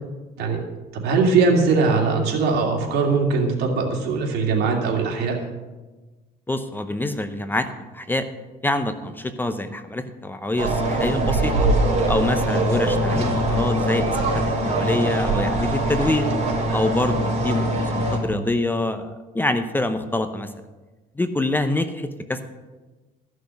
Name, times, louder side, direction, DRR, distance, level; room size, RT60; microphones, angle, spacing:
voice 1, 1.0-5.4, right 4 dB, 75° right, 0 dB, 2.6 m, -20 dB
voice 2, 6.5-7.7 7.9-8.3 8.6-11.7 12.1-16.3 16.7-20.5 21.2-22.4, left 2 dB, 10° left, 9 dB, 0.8 m, -25 dB
sound 1, 10.6-18.2, right 1 dB, 40° right, 3.6 m, -22 dB
14.0 x 6.4 x 7.0 m, 1.2 s
cardioid pair, 110°, 17 cm